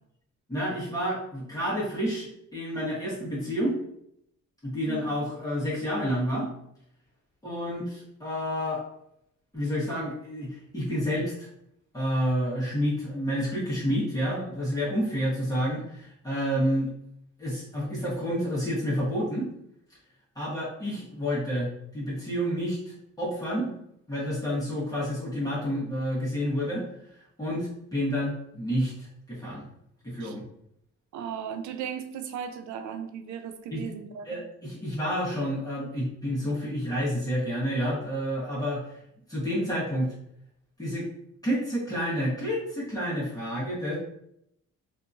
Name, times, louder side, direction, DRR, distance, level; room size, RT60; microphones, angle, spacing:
voice 1, 0.5-3.8 4.6-6.5 7.4-8.8 9.5-11.5 11.9-16.9 17.4-19.5 20.3-23.7 24.1-26.8 27.4-29.7 30.0-30.4 33.7-33.8 34.2-39.0 39.3-40.1 40.8-41.1 41.4-44.0, equal, 10° left, -8 dB, 1.1 m, -29 dB
voice 2, 31.1-34.4, right 8 dB, 70° right, 7 dB, 0.5 m, -36 dB
2.7 x 2.5 x 2.4 m, 0.75 s
cardioid pair, 90°, 30 cm